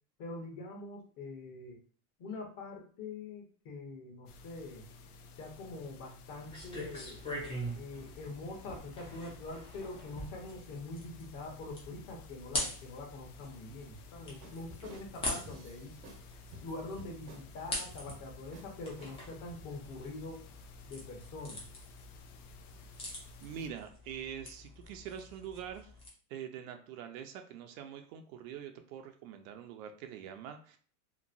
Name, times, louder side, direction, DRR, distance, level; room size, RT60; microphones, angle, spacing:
voice 1, 0.2-1.8 2.2-4.8 5.4-7.2 7.7-15.9 16.6-20.4 20.8-21.6, left 2 dB, 45° left, 1 dB, 0.9 m, -44 dB
sound 1, 4.3-23.7, left 3 dB, 70° left, 0.6 m, -54 dB
sound 2, 6.5-26.1, left 1 dB, 15° left, 0.3 m, -44 dB
sound 3, 14.4-16.2 16.5-17.5 17.9-18.2 18.5-18.7 19.0-19.6, right 1 dB, 90° right, 1.0 m, -52 dB
voice 2, 23.4-25.9 26.3-30.8, right 8 dB, 60° right, 6 dB, 0.5 m, -44 dB
3.0 x 2.1 x 2.5 m, 0.43 s
supercardioid pair, 140°, 47 cm